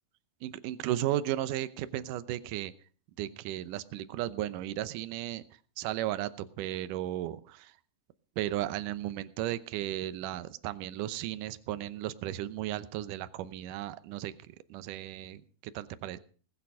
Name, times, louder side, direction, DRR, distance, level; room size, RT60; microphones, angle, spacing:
voice 1, 0.4-2.7 3.2-5.4 5.8-7.7 8.4-14.3 14.7-16.2, right 13 dB, 75° right, 13 dB, 2.0 m, -35 dB
19.5 x 8.8 x 6.2 m, 0.42 s
omnidirectional pair, 4.6 m